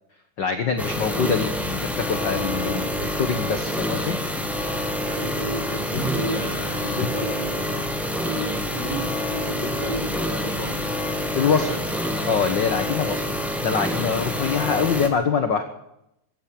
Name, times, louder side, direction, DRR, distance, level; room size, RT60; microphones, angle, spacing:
voice 1, 0.4-4.2 11.3-12.0 12.3-15.6, left 6 dB, 85° left, 7 dB, 1.0 m, -24 dB
sound 1, 0.8-15.1, left 1 dB, ahead, 0.3 m, -27 dB
voice 2, 5.0-7.9 8.2-10.8 11.4-11.8, right 1 dB, 25° right, 2 dB, 1.0 m, -32 dB
15.0 x 9.1 x 9.9 m, 0.82 s
omnidirectional pair, 3.7 m